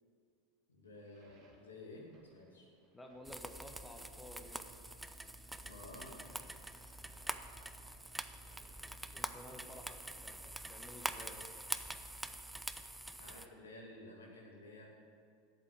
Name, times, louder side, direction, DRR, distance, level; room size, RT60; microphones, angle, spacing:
voice 1, 0.7-2.7 5.6-6.2 13.2-14.9, left 2 dB, 85° left, -2 dB, 2.1 m, -53 dB
sound 1, 0.9-13.5, right 2 dB, 45° right, 2.1 m, -70 dB
voice 2, 2.9-4.6 9.1-11.4, left 1 dB, 10° left, 2 dB, 1.4 m, -53 dB
sound 2, 3.2-13.5, right 1 dB, 5° right, 0.5 m, -45 dB
8.3 x 7.6 x 8.3 m, 2.3 s
hypercardioid pair, 85°, 0 cm